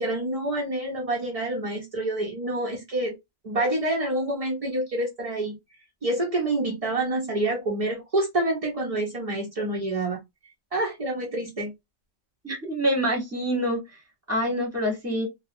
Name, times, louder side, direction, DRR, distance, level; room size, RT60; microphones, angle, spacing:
voice 1, 0.0-3.2 3.4-5.6 6.0-10.2 10.7-11.7, right 1 dB, 60° right, 0.3 m, -27 dB
voice 2, 12.4-13.8 14.3-15.3, equal, 15° right, 0.7 m, -26 dB
2.6 x 2.0 x 2.6 m
omnidirectional pair, 1.4 m